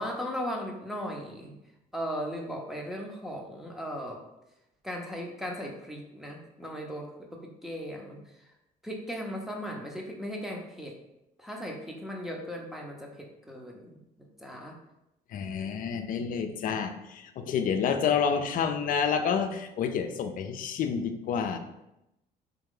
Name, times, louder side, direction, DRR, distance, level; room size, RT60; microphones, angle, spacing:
voice 1, 0.0-1.5 1.9-4.2 4.8-8.5 8.8-11.0 11.4-14.8, equal, ahead, 0 dB, 0.7 m, -37 dB
voice 2, 15.3-21.6, left 6 dB, 55° left, 7 dB, 0.5 m, -29 dB
3.6 x 2.8 x 3.8 m, 0.89 s
cardioid pair, 110°, 17 cm